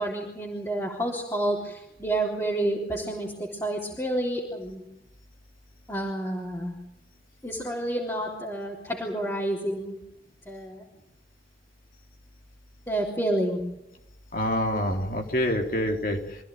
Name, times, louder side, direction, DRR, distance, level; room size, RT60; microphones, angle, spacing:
voice 1, 0.0-4.9 5.9-6.8 7.4-10.0 10.5-10.8 12.9-13.6, right 1 dB, 15° left, -5 dB, 3.8 m, -29 dB
voice 2, 14.3-16.4, equal, 50° left, 2 dB, 3.7 m, -26 dB
26.0 x 15.5 x 9.3 m, 0.89 s
head